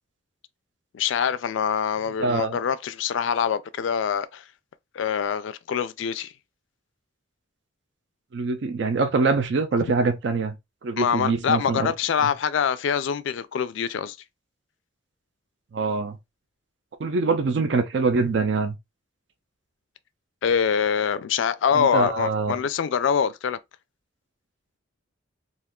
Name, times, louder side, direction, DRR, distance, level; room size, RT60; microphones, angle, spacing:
voice 1, 0.9-4.4 4.9-6.3 11.0-14.2 20.4-23.6, left 7 dB, 70° left, 0.3 m, -24 dB
voice 2, 2.2-2.6 8.3-10.5 10.8-11.9 12.2-12.3 15.7-16.2 17.0-18.8 21.7-22.5, right 4 dB, 60° right, 0.4 m, -24 dB
2.5 x 2.3 x 3.5 m
head